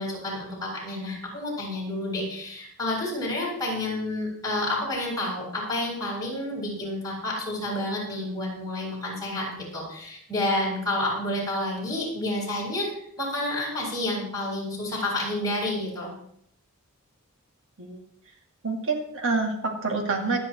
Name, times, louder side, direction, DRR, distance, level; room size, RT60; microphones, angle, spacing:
voice 1, 0.0-16.1, left 1 dB, 15° left, -5 dB, 7.8 m, -30 dB
voice 2, 18.6-20.4, right 3 dB, 60° right, 2 dB, 2.1 m, -27 dB
25.0 x 10.0 x 3.1 m, 0.68 s
head